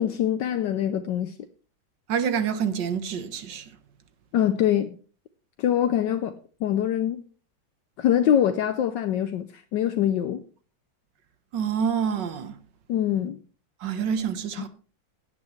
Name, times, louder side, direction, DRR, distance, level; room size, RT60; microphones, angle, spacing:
voice 1, 0.0-1.3 4.3-4.9 5.6-6.3 6.6-7.2 8.0-10.4 12.9-13.4, left 10 dB, 75° left, 1.3 m, -24 dB
voice 2, 2.1-3.6 11.5-12.6 13.8-14.7, right 7 dB, 70° right, 1.8 m, -27 dB
16.5 x 9.7 x 3.2 m
omnidirectional pair, 2.1 m